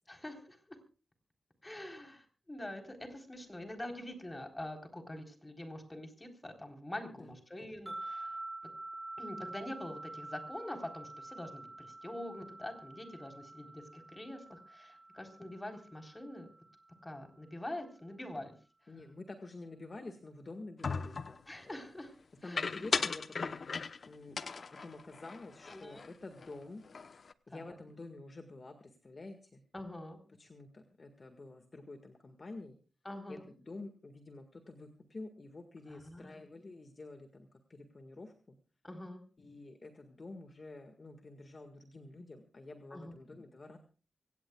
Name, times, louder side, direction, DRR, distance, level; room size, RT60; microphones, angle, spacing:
voice 1, 0.1-0.8 1.6-8.4 9.2-16.5 17.0-18.6 21.5-22.1 22.4-22.7 25.7-26.1 27.5-27.8 29.7-30.2 33.0-33.5 35.9-36.4 38.8-39.2 42.9-43.1, left 1 dB, 20° left, 5 dB, 3.9 m, -45 dB
sound 1, 7.9-17.1, right 2 dB, 15° right, 4.8 m, -47 dB
voice 2, 18.9-21.4 22.4-23.6 24.1-26.8 27.5-29.6 30.4-32.8 33.3-38.6 39.4-43.8, left 2 dB, 40° left, 6 dB, 1.8 m, -49 dB
sound 2, 20.8-21.4 22.6-24.1 24.4-26.1 26.4-26.5 26.8-27.3, left 5 dB, 60° left, 0.9 m, -37 dB
24.5 x 17.5 x 2.4 m, 0.36 s
wide cardioid pair, 95°, 0 cm